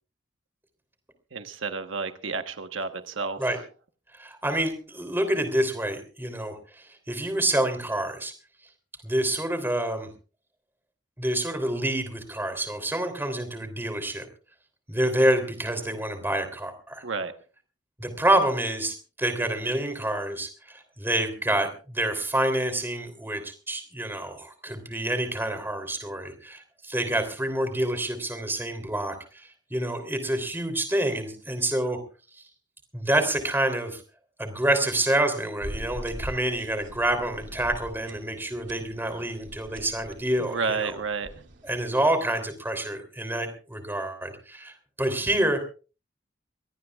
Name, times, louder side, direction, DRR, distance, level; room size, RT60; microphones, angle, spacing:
voice 1, 1.3-3.4 17.0-17.3 40.4-41.3, right 4 dB, 90° right, 8 dB, 1.3 m, -31 dB
voice 2, 4.1-8.3 9.0-10.1 11.2-14.3 14.9-17.0 18.0-32.0 32.3-32.4 32.9-34.0 34.4-40.9 41.6-45.6, right 1 dB, 10° right, 7 dB, 3.2 m, -27 dB
sound 1, 35.6-42.0, equal, 70° right, 2.9 m, -42 dB
24.5 x 18.5 x 2.4 m, 0.36 s
head